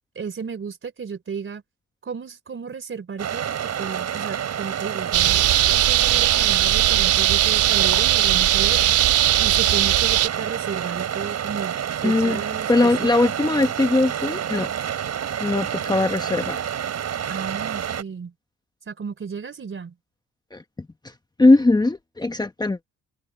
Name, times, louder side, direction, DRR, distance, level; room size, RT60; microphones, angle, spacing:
voice 1, 0.2-1.6 2.0-13.1 17.3-18.3 18.9-19.9, right 6 dB, 40° right, 3.7 m, -33 dB
sound 1, 3.2-18.0, right 9 dB, 60° right, 5.5 m, -29 dB
sound 2, 5.1-10.3, right 13 dB, 85° right, 3.2 m, -19 dB
voice 2, 12.0-12.4 12.7-14.7 15.4-16.6 20.5-20.6 21.4-22.8, left 2 dB, 15° left, 1.1 m, -20 dB
open air
cardioid pair, 90°, 30 cm